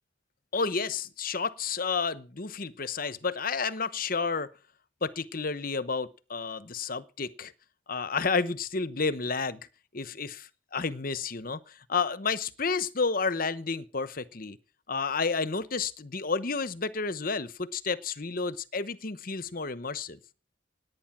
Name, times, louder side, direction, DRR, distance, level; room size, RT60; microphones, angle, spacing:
voice 1, 0.5-4.5 5.0-7.5 7.9-9.6 9.9-14.6 14.9-20.2, left 4 dB, 45° left, 0.9 m, -31 dB
18.0 x 9.5 x 6.0 m
head